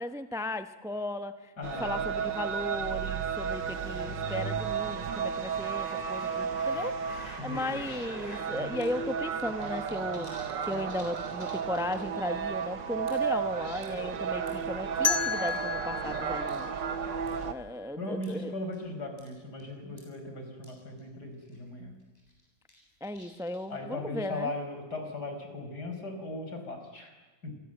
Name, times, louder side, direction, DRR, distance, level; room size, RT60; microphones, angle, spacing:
voice 1, 0.0-1.5 1.8-7.0 7.4-10.3 10.6-16.8 17.4-18.5 19.8-20.0 23.0-24.5, left 1 dB, 5° right, 10 dB, 0.5 m, -36 dB
voice 2, 1.6-2.3 7.4-7.8 8.5-8.8 18.0-21.9 23.7-27.1 27.4-27.5, left 2 dB, 55° left, 5 dB, 5.6 m, -38 dB
sound 1, 1.6-17.5, right 7 dB, 70° right, 2.0 m, -33 dB
sound 2, 5.8-8.4 8.8-8.9 9.2-12.2 12.5-12.6 13.1-13.4 13.8-14.7 15.5-16.1 16.5-16.6 17.3-17.5 18.2-18.4 18.7-18.9 19.2-19.3 19.6-19.7 20.0-20.1 20.6-20.7 21.0-21.1 21.4-21.7 22.1-23.8, equal, 20° left, 8.1 m, -49 dB
sound 3, 15.0-17.9, left 6 dB, 35° left, 1.7 m, -33 dB
28.0 x 23.0 x 8.0 m, 1.2 s
omnidirectional pair, 2.1 m